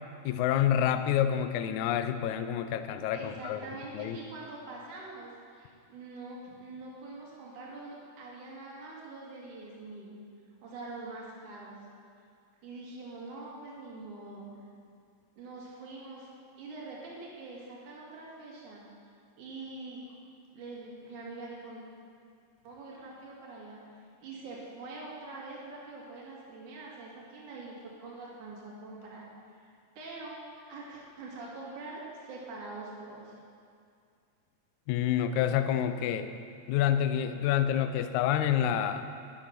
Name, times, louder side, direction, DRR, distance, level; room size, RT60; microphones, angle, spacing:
voice 1, 0.3-3.6 3.9-4.2 34.9-36.3 36.7-39.0, left 10 dB, 80° left, 10 dB, 2.0 m, -28 dB
voice 2, 3.1-10.1 10.6-11.8 12.6-14.5 15.4-16.3 16.6-18.8 19.4-20.0 20.5-21.8 22.6-27.8 28.0-29.2 29.5-33.4, right 3 dB, 70° right, -4 dB, 3.6 m, -44 dB
12.0 x 11.5 x 6.0 m, 2.3 s
omnidirectional pair, 3.6 m